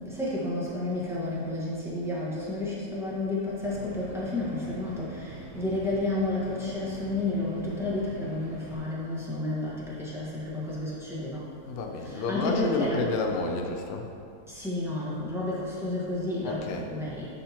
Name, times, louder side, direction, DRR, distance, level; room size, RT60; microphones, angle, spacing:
voice 1, 0.1-11.4 12.0-13.2 14.5-17.3, left 2 dB, ahead, -8 dB, 1.1 m, -31 dB
sound 1, 3.6-8.8, right 2 dB, 45° right, 1.2 m, -44 dB
voice 2, 11.6-14.1 16.4-16.9, left 3 dB, 85° left, 2 dB, 0.5 m, -30 dB
10.0 x 4.2 x 2.9 m, 2.5 s
omnidirectional pair, 1.7 m